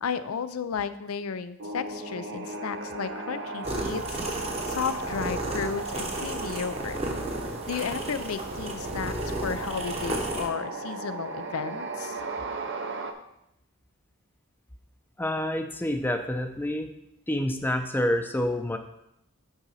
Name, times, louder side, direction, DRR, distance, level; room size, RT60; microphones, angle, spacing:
voice 1, 0.0-7.0 7.7-12.2, left 6 dB, 80° left, 13 dB, 0.5 m, -33 dB
sound 1, 1.6-13.1, right 3 dB, 55° right, 0.7 m, -36 dB
sound 2, 3.6-10.5, right 1 dB, 30° right, 0.9 m, -34 dB
voice 2, 15.2-16.9 17.3-18.8, left 1 dB, 10° left, 6 dB, 0.6 m, -28 dB
8.9 x 3.9 x 5.6 m, 0.82 s
head